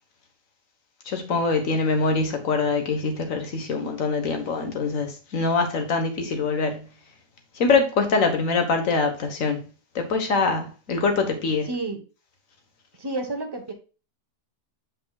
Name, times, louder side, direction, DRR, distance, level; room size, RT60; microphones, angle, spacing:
voice 1, 1.1-6.9 7.6-9.6 10.0-11.7, left 4 dB, 60° left, 1.6 m, -24 dB
voice 2, 11.6-12.0 13.0-13.7, right 2 dB, 20° right, 1.0 m, -30 dB
8.1 x 5.3 x 2.3 m
omnidirectional pair, 1.7 m